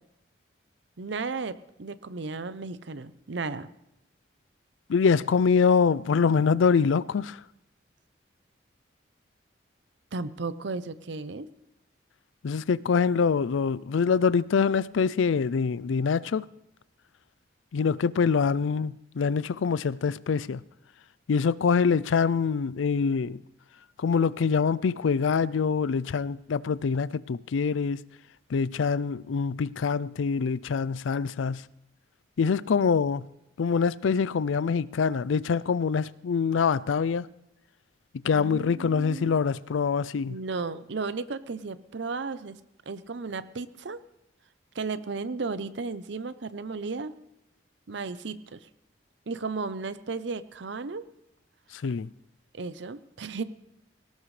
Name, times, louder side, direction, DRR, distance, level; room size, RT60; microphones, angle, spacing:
voice 1, 1.0-3.7 10.1-11.5 38.3-39.3 40.3-42.6 42.9-44.0 44.7-47.2 47.9-48.6 49.3-51.0 52.5-53.4, right 4 dB, 75° right, 0.7 m, -34 dB
voice 2, 4.9-7.4 12.4-16.4 17.7-20.6 21.3-23.4 24.0-28.0 28.5-31.6 32.4-33.3 33.6-37.3 38.2-40.4 51.7-52.1, left 5 dB, 90° left, 0.4 m, -25 dB
18.5 x 18.0 x 3.3 m
head